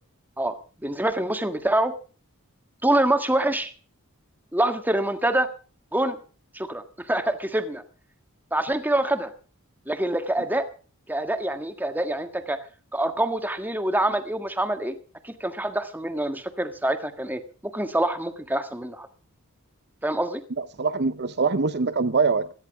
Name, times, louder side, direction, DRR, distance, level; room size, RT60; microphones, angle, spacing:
voice 1, 0.8-1.9 2.8-3.7 4.5-5.5 5.9-6.2 6.5-7.8 8.5-9.3 9.9-10.7 11.1-12.6 12.9-15.0 15.2-19.1 20.0-20.4, right 1 dB, 10° right, 1.6 m, -25 dB
voice 2, 20.6-22.5, right 4 dB, 50° right, 0.8 m, -23 dB
17.0 x 13.5 x 4.9 m
head